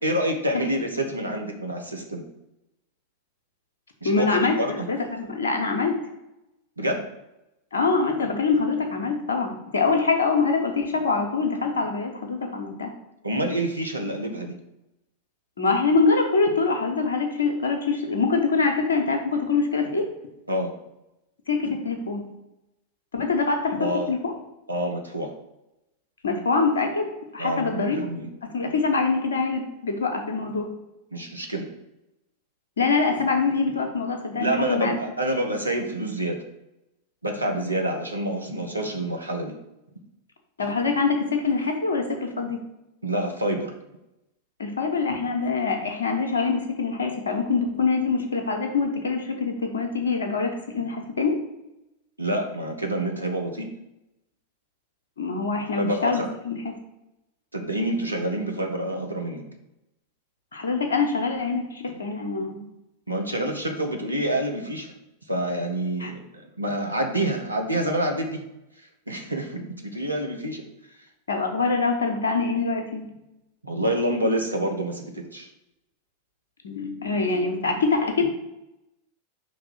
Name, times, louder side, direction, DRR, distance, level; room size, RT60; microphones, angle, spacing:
voice 1, 0.0-2.2 4.0-4.3 4.6-4.9 6.8-7.0 13.2-14.5 20.5-20.7 23.8-24.1 24.7-25.3 27.4-28.3 31.1-31.7 34.4-36.4 37.2-39.6 43.0-43.7 52.2-53.7 55.7-56.3 57.5-59.4 63.1-64.9 65.3-68.4 69.1-70.6 73.6-75.5, right 1 dB, 85° right, 3 dB, 0.9 m, -27 dB
voice 2, 4.0-4.6 4.9-6.0 7.7-12.9 15.6-20.1 21.5-22.2 23.1-24.3 26.2-28.0 28.5-30.7 32.8-35.0 40.6-42.6 44.6-51.3 55.2-56.7 60.5-62.6 66.0-66.1 71.3-73.0 76.6-78.3, left 4 dB, 70° left, 4 dB, 1.0 m, -24 dB
5.3 x 3.5 x 5.7 m, 0.90 s
figure-of-eight pair, 90°, 0 cm